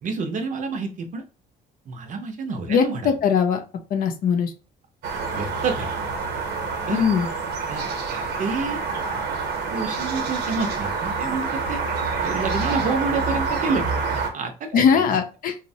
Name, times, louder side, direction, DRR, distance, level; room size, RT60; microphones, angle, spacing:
voice 1, 0.0-1.2 1.9-3.0 5.3-5.9 6.9-7.1 7.7-7.8 8.4-8.8 9.7-11.8 12.2-13.9 14.1-15.1, right 4 dB, 50° right, 6 dB, 0.6 m, -28 dB
voice 2, 2.7-3.6 3.9-4.5 6.9-7.3 14.7-15.6, left 7 dB, 55° left, 6 dB, 0.6 m, -20 dB
sound 1, 5.0-14.3, right 4 dB, 80° right, 0.8 m, -27 dB
3.0 x 2.1 x 2.7 m, 0.32 s
cardioid pair, 110°, 17 cm